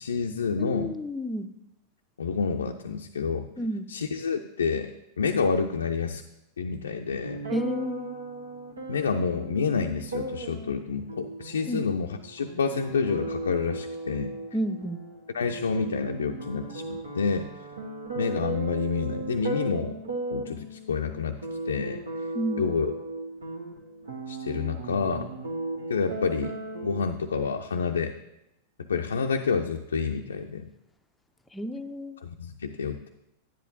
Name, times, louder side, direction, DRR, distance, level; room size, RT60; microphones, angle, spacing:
voice 1, 0.0-1.0 2.2-3.5 3.9-6.2 6.6-7.4 8.9-14.4 15.3-17.5 18.1-20.0 20.3-21.4 21.7-22.0 22.6-22.9 24.3-25.3 25.9-26.6 26.8-28.1 28.8-30.7 32.2-33.1, left 5 dB, 70° left, 4 dB, 0.5 m, -28 dB
voice 2, 0.6-1.5 3.6-3.9 7.5-8.1 11.7-11.8 14.5-15.0 22.3-22.7 31.5-32.2, equal, 5° left, 8 dB, 0.6 m, -31 dB
sound 1, 7.2-27.0, right 2 dB, 70° right, 1.3 m, -36 dB
10.5 x 10.0 x 2.8 m, 0.90 s
figure-of-eight pair, 90°, 0 cm